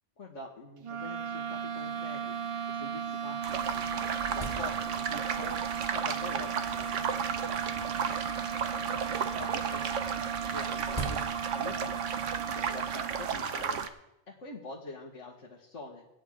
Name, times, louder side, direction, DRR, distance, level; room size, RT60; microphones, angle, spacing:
voice 1, 0.2-2.4 2.7-5.6 5.9-8.2 8.8-12.0 12.5-13.8 14.3-16.1, left 3 dB, 80° left, -4 dB, 1.9 m, -45 dB
sound 1, 0.8-13.5, right 7 dB, 55° right, 0.3 m, -36 dB
sound 2, 1.2-1.3 1.5-1.6 2.3-2.4 3.0-3.1 3.5-5.3 6.0-6.5 7.4-8.7 10.0-11.8, right 2 dB, 25° left, 3.2 m, -42 dB
sound 3, 3.4-13.9, right 7 dB, 80° right, 1.2 m, -34 dB
22.0 x 9.1 x 3.7 m, 0.88 s
omnidirectional pair, 1.2 m